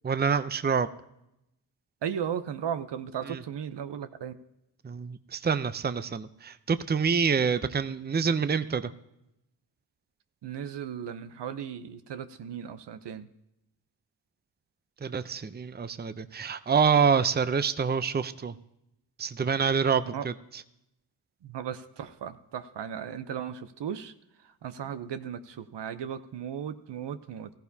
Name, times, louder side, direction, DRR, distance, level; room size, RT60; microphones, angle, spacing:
voice 1, 0.0-0.9 3.3-3.4 4.8-8.9 15.0-18.5 19.2-20.3, right 6 dB, 25° right, 13 dB, 0.6 m, -26 dB
voice 2, 2.0-4.3 10.4-13.3 20.0-20.3 21.4-24.1 24.6-27.5, right 8 dB, 70° right, 11 dB, 0.8 m, -36 dB
14.5 x 14.5 x 2.8 m, 0.84 s
supercardioid pair, 45°, 43 cm